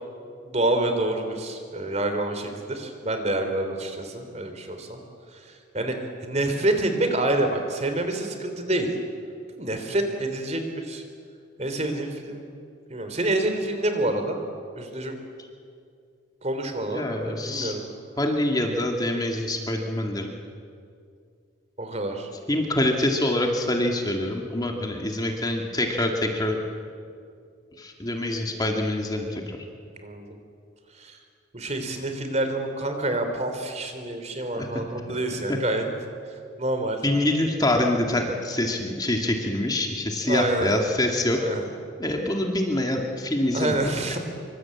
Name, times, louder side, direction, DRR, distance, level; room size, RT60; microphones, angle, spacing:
voice 1, 0.4-5.0 5.7-6.0 6.2-8.9 9.6-11.0 11.6-12.4 12.9-14.4 14.7-15.1 16.4-17.9 21.8-22.3 30.0-30.3 31.0-31.2 31.5-35.8 36.6-37.0 40.2-40.8 41.4-41.6 43.5-44.2, right 1 dB, 35° right, 6 dB, 3.3 m, -27 dB
voice 2, 16.9-17.8 18.2-20.3 22.5-26.6 27.8-29.6 34.6-34.7 35.5-35.6 37.0-41.4 42.0-43.9, left 1 dB, 20° left, 2 dB, 2.3 m, -25 dB
26.5 x 24.5 x 8.7 m, 2.3 s
head